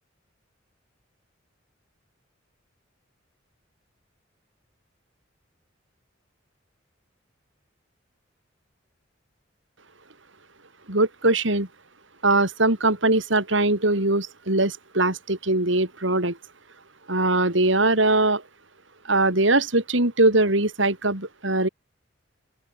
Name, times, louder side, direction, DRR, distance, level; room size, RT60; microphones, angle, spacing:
voice 1, 10.9-11.7 12.2-16.4 17.1-18.4 19.1-21.7, right 2 dB, 70° right, 5.2 m, -21 dB
open air
head